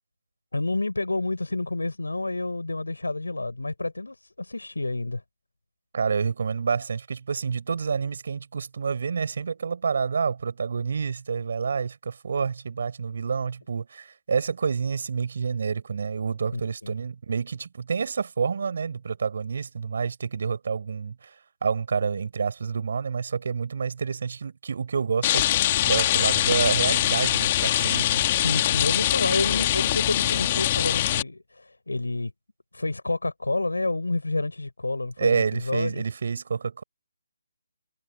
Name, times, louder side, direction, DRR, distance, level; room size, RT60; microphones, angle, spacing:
voice 1, 0.5-5.2 16.5-16.9 28.3-32.3 32.7-36.0, left 2 dB, 85° left, 4.5 m, -29 dB
voice 2, 5.9-21.3 21.6-25.5 25.8-28.2 35.2-36.8, right 5 dB, 55° right, 4.9 m, -28 dB
Rain, 25.2-31.2, left 13 dB, 35° left, 1.9 m, -23 dB
figure-of-eight pair, 150°, 0 cm